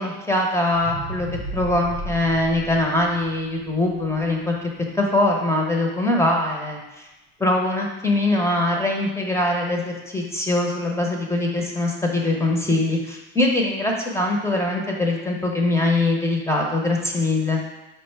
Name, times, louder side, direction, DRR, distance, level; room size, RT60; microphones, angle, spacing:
voice 1, 0.0-4.7 4.9-7.1 7.4-17.6, left 2 dB, 10° left, -1 dB, 0.8 m, -22 dB
sound 1, 0.7-5.0 5.5-5.6, right 2 dB, 85° right, 0.7 m, -35 dB
4.9 x 2.2 x 4.4 m, 1.1 s
supercardioid pair, 95°, 32 cm